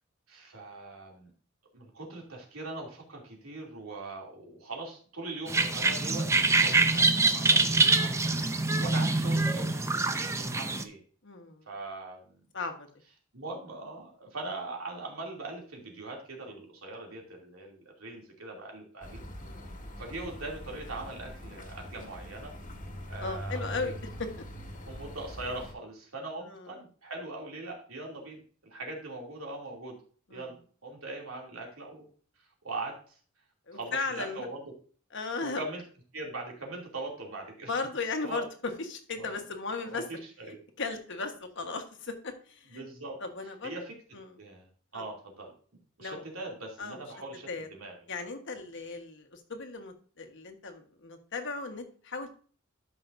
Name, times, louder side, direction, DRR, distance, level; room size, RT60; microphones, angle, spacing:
voice 1, 0.3-1.3 1.7-11.0 11.7-12.4 13.3-19.2 20.0-22.5 23.1-23.9 24.9-28.4 28.7-30.0 30.3-30.6 30.8-32.1 32.6-33.2 33.7-34.7 35.4-35.8 36.1-37.7 38.2-38.4 39.2-39.4 39.9-40.6 42.7-43.2 43.6-43.9 44.4-44.7 44.9-45.5 46.0-47.9, right 2 dB, 85° right, 0 dB, 2.8 m, -41 dB
sound 1, 5.5-10.8, right 3 dB, 15° right, 0.5 m, -25 dB
voice 2, 11.2-11.7 12.5-12.9 19.4-19.7 23.2-24.3 26.4-26.7 30.3-30.5 33.7-34.5 35.1-35.6 37.7-40.0 40.8-42.9 43.2-43.7 44.1-44.3 44.9-45.0 46.0-46.2 46.8-47.0 47.5-47.7 48.1-52.3, left 3 dB, 60° left, 5 dB, 1.4 m, -36 dB
sound 2, 19.0-25.7, equal, 40° left, 1.6 m, -42 dB
13.0 x 5.7 x 2.6 m, 0.43 s
head